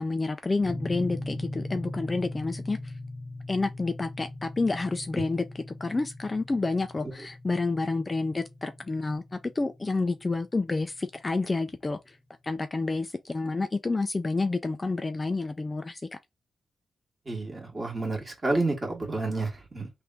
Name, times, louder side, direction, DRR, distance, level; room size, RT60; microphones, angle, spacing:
voice 1, 0.0-2.9 3.5-12.2 12.4-16.0, left 3 dB, 25° left, 0.4 m, -29 dB
sound 1, 0.7-10.8, left 1 dB, 5° right, 0.7 m, -40 dB
voice 2, 17.3-19.9, right 2 dB, 30° right, 1.7 m, -30 dB
3.4 x 2.5 x 4.4 m
cardioid pair, 100°, 0 cm